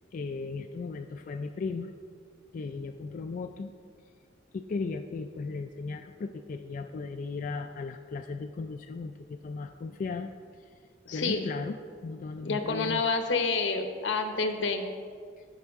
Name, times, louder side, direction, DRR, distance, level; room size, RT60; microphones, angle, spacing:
voice 1, 0.1-1.9 2.5-3.7 4.5-10.3 10.6-10.7 11.1-13.0 15.4-15.5, left 4 dB, 45° left, 5 dB, 0.3 m, -36 dB
voice 2, 11.0-11.5 12.4-14.9, left 4 dB, 80° left, 6 dB, 0.9 m, -28 dB
15.0 x 5.6 x 3.6 m, 2.1 s
head